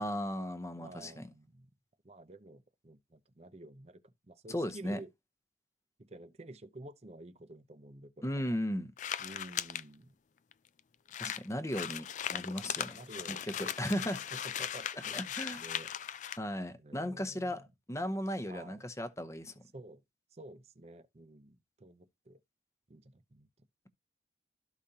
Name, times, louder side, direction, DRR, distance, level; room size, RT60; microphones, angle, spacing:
voice 1, 0.0-1.3 4.5-5.0 8.2-8.9 11.2-13.0 13.3-14.2 15.1-15.6 16.4-19.5, equal, 15° left, 0.8 m, -36 dB
voice 2, 0.8-1.7 2.0-5.1 6.0-8.6 9.2-10.2 12.9-13.5 13.8-13.9 14.3-15.9 16.8-17.7 18.5-18.8 19.7-20.0 20.3-22.4 22.9-23.5, right 2 dB, 35° right, 0.7 m, -51 dB
sound 1, 9.0-9.8 10.5-10.6 10.8-10.9 11.1-16.4, left 9 dB, 45° left, 0.4 m, -38 dB
13.0 x 5.0 x 2.8 m
head